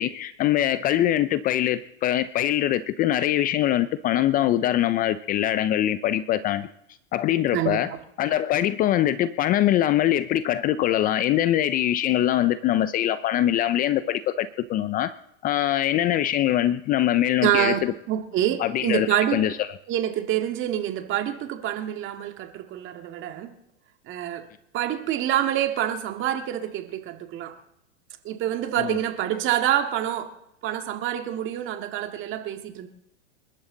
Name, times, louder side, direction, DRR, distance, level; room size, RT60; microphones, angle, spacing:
voice 1, 0.0-6.7 7.1-7.9 8.2-15.1 15.4-17.9 18.6-19.7 28.8-29.0, left 12 dB, 25° left, 0.5 m, -23 dB
voice 2, 7.5-8.0 17.4-17.8 18.1-19.4 19.9-23.5 24.1-24.4 24.7-27.5 28.2-30.3 30.6-32.9, right 11 dB, 35° right, 2.1 m, -26 dB
28.5 x 12.0 x 3.9 m
hypercardioid pair, 120°, 34 cm